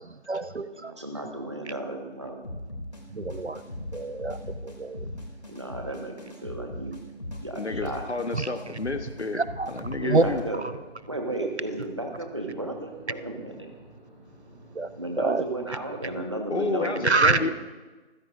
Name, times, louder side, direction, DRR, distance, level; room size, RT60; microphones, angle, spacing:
voice 1, 0.0-0.9 3.1-3.6 3.9-5.1 8.3-8.5 9.3-10.2 10.6-10.7 11.4-11.5 14.7-14.9 15.2-15.5 17.0-17.4, right 3 dB, 75° right, 13 dB, 1.0 m, -26 dB
voice 2, 0.7-2.5 5.5-6.2 6.4-7.0 7.4-8.0 10.0-10.6 11.1-13.7 15.0-17.5, right 1 dB, 25° right, 2 dB, 1.5 m, -34 dB
sound 1, 2.4-10.4, left 1 dB, 35° left, 2.7 m, -39 dB
voice 3, 7.6-9.4 9.7-10.4 16.5-17.5, left 3 dB, 75° left, 7 dB, 1.4 m, -30 dB
sound 2, 8.5-16.3, right 1 dB, 5° left, 3.5 m, -51 dB
27.5 x 15.0 x 2.6 m, 1.2 s
figure-of-eight pair, 175°, 34 cm